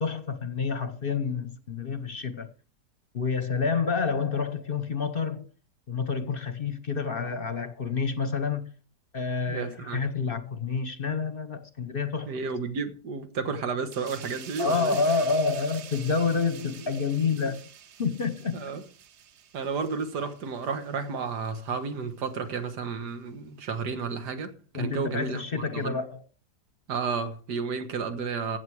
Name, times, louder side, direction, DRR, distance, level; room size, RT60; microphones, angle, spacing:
voice 1, 0.0-2.5 3.1-5.5 5.9-8.7 9.1-12.3 14.6-17.7 18.0-18.7 24.7-26.2, left 5 dB, 40° left, 0.9 m, -28 dB
voice 2, 9.5-10.0 12.3-15.0 18.5-18.8 19.5-25.9 26.9-28.6, right 5 dB, 85° right, 2.0 m, -32 dB
sound 1, 13.9-21.1 21.4-21.7, right 9 dB, 60° right, 0.8 m, -46 dB
15.5 x 8.3 x 4.8 m
omnidirectional pair, 1.8 m